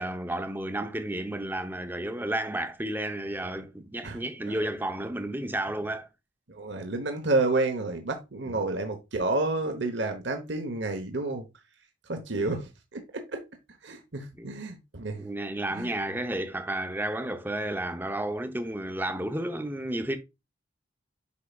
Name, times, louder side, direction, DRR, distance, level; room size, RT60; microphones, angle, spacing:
voice 1, 0.0-6.1 12.3-12.6 14.4-14.5 15.1-20.2, right 1 dB, 10° right, 0.7 m, -32 dB
voice 2, 4.0-4.7 6.5-11.5 12.1-13.4 13.8-15.2 15.7-15.9, right 2 dB, 60° right, 1.1 m, -30 dB
8.4 x 5.7 x 2.4 m
head